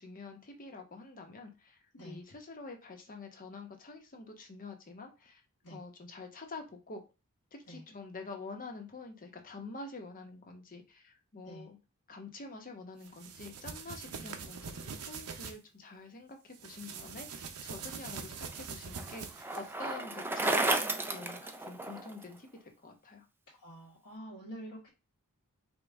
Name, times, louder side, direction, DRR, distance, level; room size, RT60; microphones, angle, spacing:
voice 1, 0.0-1.8 2.0-5.4 5.7-7.0 7.5-11.8 12.1-23.3, left 3 dB, 40° left, 4 dB, 0.9 m, -47 dB
sound 1, 13.0-15.6 16.5-19.7, right 6 dB, 80° right, 0.7 m, -44 dB
Bicycle, 17.8-22.2, right 2 dB, 10° right, 0.4 m, -33 dB
voice 2, 23.5-24.9, equal, 85° left, -6 dB, 1.6 m, -47 dB
5.3 x 2.3 x 3.5 m, 0.28 s
head